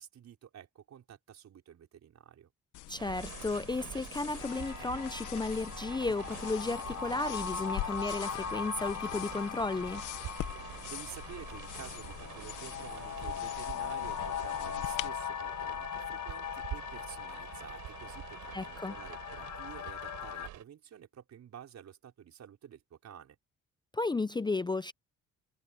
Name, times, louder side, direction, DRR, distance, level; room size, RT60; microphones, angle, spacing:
voice 1, 0.0-2.5 10.6-23.4, right 9 dB, 65° right, 5.1 m, -51 dB
sound 1, 2.7-15.1, left 14 dB, 85° left, 1.1 m, -44 dB
voice 2, 2.9-10.1 18.5-18.9 23.9-24.9, left 3 dB, 15° left, 0.5 m, -34 dB
sound 2, 3.0-20.6, right 13 dB, 80° right, 5.9 m, -47 dB
sound 3, 4.4-20.5, left 8 dB, 70° left, 1.7 m, -40 dB
cardioid pair, 90°, 30 cm